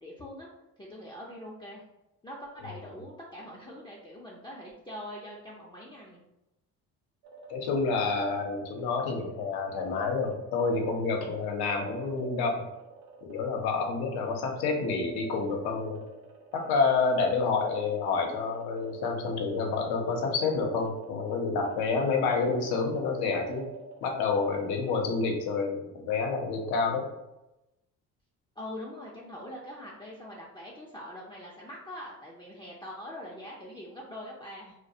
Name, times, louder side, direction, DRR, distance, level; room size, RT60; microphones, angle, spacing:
voice 1, 0.0-0.5 0.8-1.8 2.2-6.2 28.6-34.7, left 1 dB, 15° left, -4 dB, 0.4 m, -43 dB
sound 1, 7.2-25.7, right 6 dB, 85° right, 0.5 m, -47 dB
voice 2, 7.5-12.6 13.3-16.0 16.5-23.7 24.0-27.1, left 4 dB, 75° left, 2 dB, 0.7 m, -28 dB
2.2 x 2.1 x 2.7 m, 0.93 s
hypercardioid pair, 55°, 38 cm